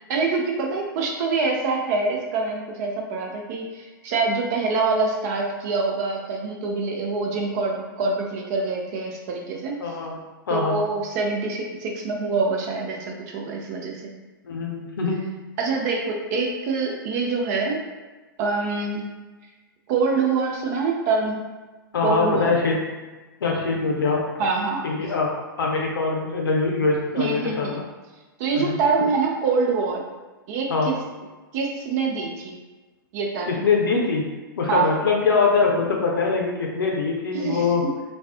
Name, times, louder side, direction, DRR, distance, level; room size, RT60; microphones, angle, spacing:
voice 1, 0.1-9.8 10.5-14.0 15.6-17.8 18.4-19.1 19.9-21.5 22.0-22.5 24.4-24.8 27.2-27.8 28.4-30.0 30.5-31.0 31.5-32.6 33.1-33.6 34.7-34.9 37.3-37.9, right 4 dB, 45° right, 0 dB, 0.5 m, -25 dB
voice 2, 9.8-10.2 10.5-10.8 14.4-15.2 21.9-22.8 23.4-24.4 24.8-25.3 25.6-27.7 28.5-28.8 30.7-30.9 33.5-34.2 34.6-37.8, left 4 dB, 75° left, -1 dB, 0.5 m, -23 dB
2.5 x 2.3 x 2.4 m, 1.2 s
figure-of-eight pair, 110°, 12 cm